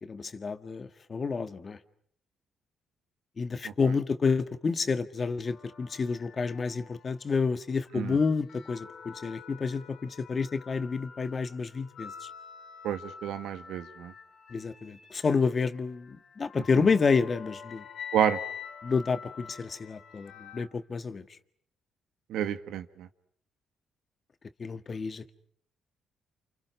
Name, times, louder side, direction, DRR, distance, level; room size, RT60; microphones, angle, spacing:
voice 1, 0.0-1.8 3.4-12.3 14.5-17.8 18.8-21.2 24.6-25.3, left 5 dB, 35° left, 1.7 m, -29 dB
sound 1, 5.5-7.3 7.9-20.7, left 7 dB, 70° left, 4.2 m, -46 dB
voice 2, 12.8-14.1 16.8-16.9 18.1-18.4 22.3-23.1, right 10 dB, 85° right, 1.5 m, -30 dB
29.0 x 28.5 x 6.1 m
cardioid pair, 90°, 0 cm